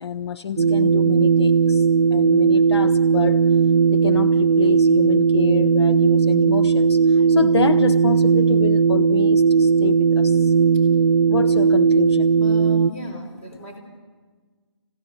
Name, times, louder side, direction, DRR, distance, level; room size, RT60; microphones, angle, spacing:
voice 1, 0.0-3.5 3.9-10.5 11.3-12.3, left 6 dB, 60° left, 0.6 m, -28 dB
sound 1, 0.6-12.9, right 5 dB, 65° right, 0.7 m, -17 dB
voice 2, 12.3-13.8, left 1 dB, 25° left, 4.3 m, -36 dB
25.5 x 16.5 x 9.6 m
hypercardioid pair, 165°, 15 cm